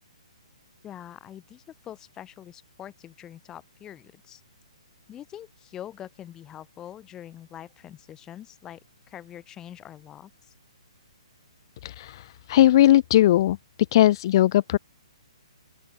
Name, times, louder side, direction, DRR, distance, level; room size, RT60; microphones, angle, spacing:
voice 1, 0.8-4.4 5.1-8.8 9.1-10.5, left 11 dB, 15° left, 3.4 m, -44 dB
voice 2, 11.8-13.6 13.9-14.8, left 13 dB, 45° left, 0.5 m, -19 dB
open air
hypercardioid pair, 140°, 3 cm